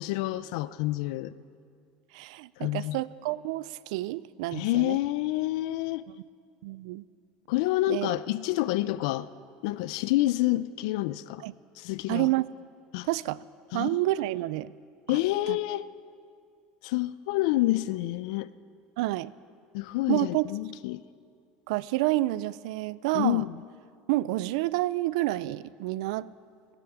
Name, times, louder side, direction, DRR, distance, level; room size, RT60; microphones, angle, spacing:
voice 1, 0.0-1.3 2.6-3.0 4.5-6.0 7.5-9.3 9.6-11.4 11.8-12.3 12.9-13.1 13.7-14.0 15.1-15.9 16.8-18.5 19.7-21.0 23.1-23.6, left 16 dB, 80° left, 16 dB, 0.4 m, -28 dB
voice 2, 2.1-5.0 6.6-7.0 7.9-8.1 11.4-11.5 12.1-12.5 13.1-13.4 13.7-14.7 15.1-15.2 15.5-15.6 19.0-19.3 20.1-20.5 21.7-23.5 24.1-26.3, right 18 dB, 85° right, 19 dB, 0.3 m, -29 dB
17.0 x 10.0 x 7.2 m, 2.2 s
cardioid pair, 145°, 3 cm